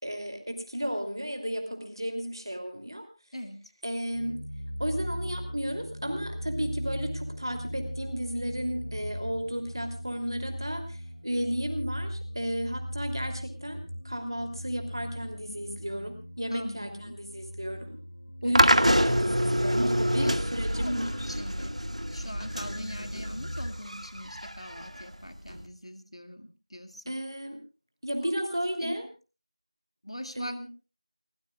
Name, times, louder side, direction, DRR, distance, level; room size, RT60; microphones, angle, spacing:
voice 1, 0.0-3.1 3.8-4.4 4.8-13.8 14.0-18.0 18.4-21.3 27.1-27.6 28.0-29.1 30.4-30.7, equal, 40° right, 5 dB, 2.9 m, -33 dB
voice 2, 3.3-3.6 16.5-17.2 18.4-18.6 20.1-21.8 22.1-27.1 28.2-28.3 28.8-29.0 30.0-30.7, equal, 60° left, 7 dB, 2.2 m, -41 dB
sound 1, 4.1-23.7, equal, 80° left, 2.7 m, -39 dB
sound 2, 18.6-25.6, equal, 80° right, 1.9 m, -27 dB
29.5 x 15.0 x 2.4 m, 0.32 s
figure-of-eight pair, 180°, 3 cm